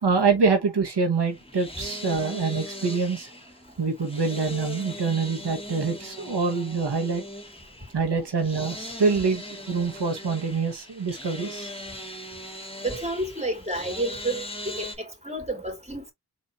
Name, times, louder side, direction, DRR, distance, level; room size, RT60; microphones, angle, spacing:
voice 1, 0.0-3.3 3.8-7.2 7.9-11.7, right 4 dB, 90° right, 1.2 m, -25 dB
sound 1, 1.2-15.0, left 1 dB, 15° left, 1.7 m, -40 dB
voice 2, 12.8-16.1, right 2 dB, 15° right, 2.8 m, -30 dB
4.3 x 2.9 x 3.6 m
wide cardioid pair, 55°, 39 cm